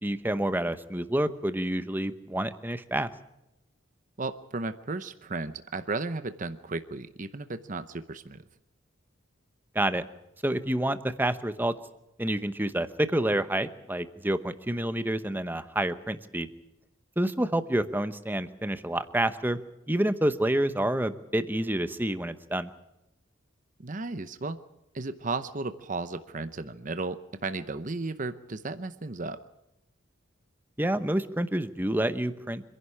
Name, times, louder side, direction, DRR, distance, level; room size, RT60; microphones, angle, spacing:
voice 1, 0.0-3.1 9.7-10.0 10.4-11.7 12.2-16.5 17.2-19.6 19.9-22.7 30.8-32.6, right 1 dB, 10° right, 11 dB, 0.9 m, -28 dB
voice 2, 4.2-8.4 23.8-24.6 24.9-29.4, right 3 dB, 40° right, 11 dB, 0.8 m, -34 dB
26.0 x 11.0 x 9.7 m, 0.91 s
head